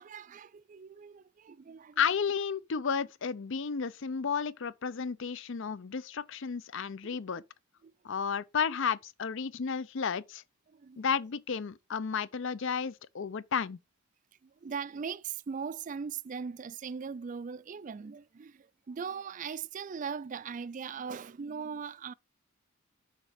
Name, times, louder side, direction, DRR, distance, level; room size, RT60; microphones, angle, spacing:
voice 1, 0.0-2.0 7.0-7.2 7.8-7.9 10.7-11.0 14.4-22.1, right 6 dB, 35° right, 0.3 m, -40 dB
voice 2, 2.0-7.4 8.0-10.4 11.0-13.8, left 6 dB, 60° left, 0.5 m, -32 dB
6.6 x 5.9 x 5.1 m
head